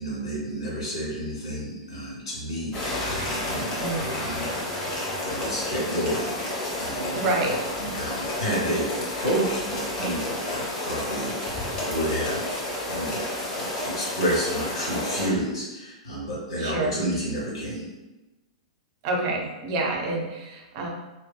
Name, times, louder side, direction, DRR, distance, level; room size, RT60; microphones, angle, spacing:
voice 1, 0.0-3.1 3.5-3.8 4.2-4.6 4.9-7.4 7.8-17.9, equal, 60° left, -6 dB, 1.4 m, -30 dB
sound 1, 2.7-15.3, left 1 dB, 25° left, 0.7 m, -30 dB
voice 2, 3.8-4.1 7.1-7.6 16.6-17.0 19.0-20.9, right 2 dB, 40° right, 0 dB, 0.5 m, -28 dB
2.6 x 2.2 x 2.2 m, 1.0 s
figure-of-eight pair, 100°, 3 cm